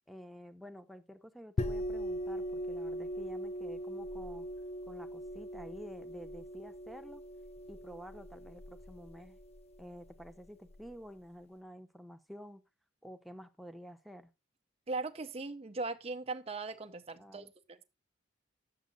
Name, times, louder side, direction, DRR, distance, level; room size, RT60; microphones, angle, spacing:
voice 1, 0.1-4.5 4.9-7.2 7.7-9.4 9.8-12.6 13.0-14.3 17.2-17.5, equal, ahead, 0.9 m, -50 dB
sound 1, 1.6-10.9, equal, 30° left, 0.4 m, -40 dB
voice 2, 14.9-17.8, right 3 dB, 30° right, 0.7 m, -39 dB
9.5 x 7.3 x 4.0 m
head